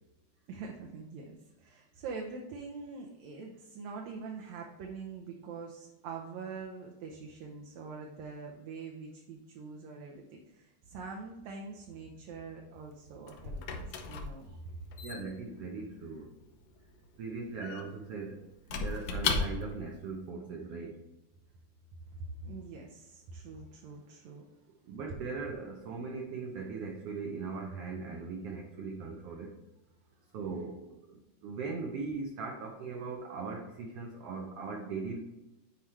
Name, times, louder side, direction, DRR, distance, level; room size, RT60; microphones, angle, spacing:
voice 1, 0.5-14.8 22.1-24.4, right 4 dB, 70° right, 0 dB, 1.8 m, -44 dB
Squeak / Wood, 12.7-19.9, left 4 dB, 80° left, 1.3 m, -37 dB
voice 2, 15.0-16.3 17.2-21.0 24.9-29.5 30.3-35.2, right 4 dB, 90° right, 1 dB, 1.3 m, -39 dB
9.3 x 4.7 x 3.2 m, 1.0 s
omnidirectional pair, 3.7 m